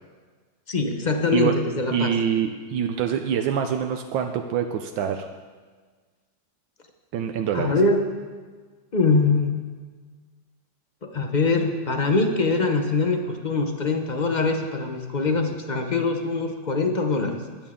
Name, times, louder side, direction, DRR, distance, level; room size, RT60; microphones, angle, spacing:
voice 1, 0.7-2.1 7.5-8.1 8.9-9.6 11.0-17.4, left 3 dB, 40° left, 4 dB, 0.6 m, -23 dB
voice 2, 1.9-5.3 7.1-7.8, right 8 dB, 85° right, 5 dB, 1.4 m, -25 dB
21.5 x 8.9 x 3.7 m, 1.5 s
omnidirectional pair, 2.0 m